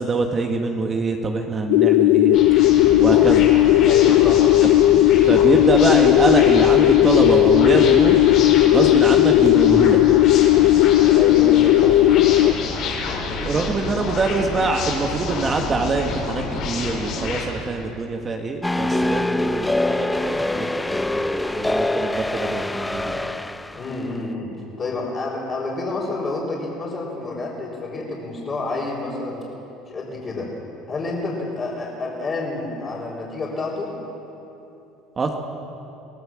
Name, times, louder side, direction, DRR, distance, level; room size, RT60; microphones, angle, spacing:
voice 1, 0.0-2.4 3.0-3.5 5.3-8.2 8.6-10.0 13.4-23.2 35.2-35.3, right 3 dB, 25° right, 2 dB, 1.6 m, -24 dB
sound 1, 1.7-12.5, left 15 dB, 80° left, 0.5 m, -15 dB
sound 2, 2.3-17.4, left 3 dB, 60° left, 5.7 m, -28 dB
voice 2, 3.9-4.5 11.1-12.6 23.7-24.5 24.8-29.4 29.9-30.5 30.9-33.9, left 3 dB, 35° left, -6 dB, 4.7 m, -29 dB
sound 3, 18.6-23.9, left 1 dB, 10° left, 0.5 m, -24 dB
24.0 x 17.0 x 7.6 m, 2.9 s
cardioid pair, 125°, 0 cm